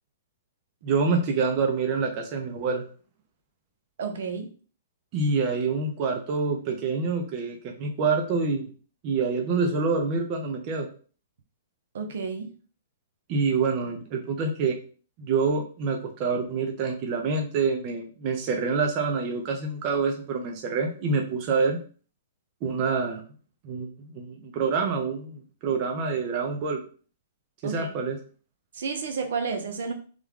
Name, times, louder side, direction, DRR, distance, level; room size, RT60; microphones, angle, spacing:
voice 1, 0.8-2.8 5.1-8.7 9.0-10.9 13.3-14.8 15.2-21.8 22.6-23.2 23.6-26.8 27.6-28.2, right 4 dB, 35° right, 3 dB, 0.5 m, -26 dB
voice 2, 4.0-4.5 11.9-12.5 27.6-27.9 28.7-29.9, right 5 dB, 70° right, 5 dB, 0.7 m, -31 dB
3.3 x 2.2 x 3.6 m, 0.39 s
hypercardioid pair, 155°, 0 cm